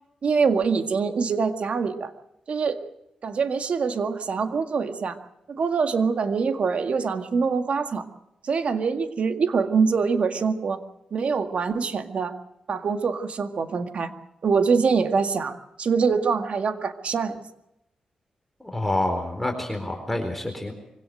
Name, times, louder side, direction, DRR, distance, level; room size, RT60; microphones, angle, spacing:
voice 1, 0.2-2.1 2.5-2.8 3.2-5.2 5.5-8.1 8.4-10.8 11.1-12.3 12.7-14.1 14.4-17.4, right 5 dB, 65° right, 7 dB, 1.9 m, -24 dB
voice 2, 18.6-20.7, left 1 dB, 5° left, 3 dB, 4.3 m, -27 dB
24.0 x 17.0 x 7.9 m, 0.86 s
cardioid pair, 65°, 2 cm